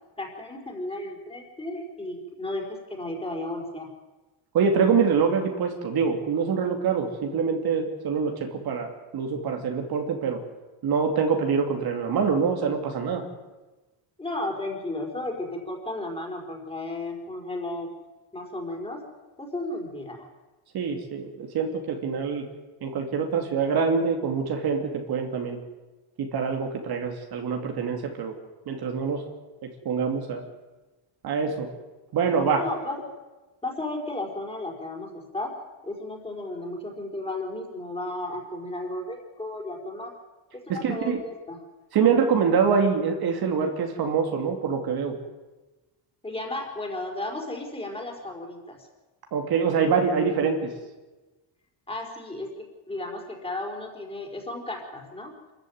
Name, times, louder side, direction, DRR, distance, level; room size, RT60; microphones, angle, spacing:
voice 1, 0.2-3.9 14.2-17.9 18.3-19.0 19.4-20.3 32.5-33.0 33.6-35.6 35.8-40.1 40.5-41.6 46.2-48.9 51.9-52.5 52.9-55.3, left 2 dB, 10° left, 0 dB, 4.6 m, -34 dB
voice 2, 4.5-10.4 10.8-13.3 20.7-22.5 22.8-25.6 26.2-28.3 28.7-29.2 29.6-30.4 31.2-31.7 32.1-32.6 40.7-41.2 41.9-45.2 49.3-50.7, right 6 dB, 50° right, 3 dB, 2.6 m, -25 dB
27.0 x 14.0 x 9.4 m, 1.2 s
cardioid pair, 175°, 48 cm